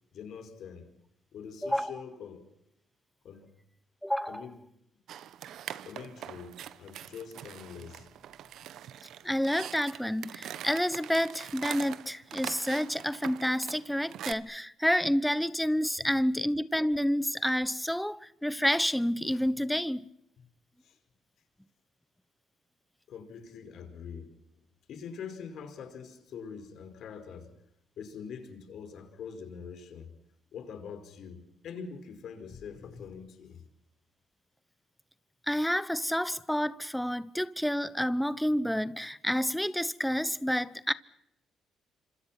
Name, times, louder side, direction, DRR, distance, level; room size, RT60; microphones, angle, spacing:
voice 1, 0.1-0.9 1.3-2.4 3.2-3.5 4.3-4.5 5.8-8.1 20.8-21.0 23.1-24.3 24.9-27.5 28.0-30.1 30.5-33.6, left 6 dB, 65° left, 5.2 m, -44 dB
voice 2, 1.6-2.0 4.0-4.5 9.2-20.1 35.5-40.9, equal, 5° left, 1.0 m, -29 dB
sound 1, 5.1-14.3, right 11 dB, 70° right, 1.1 m, -43 dB
27.5 x 26.0 x 6.0 m
supercardioid pair, 75°, 0 cm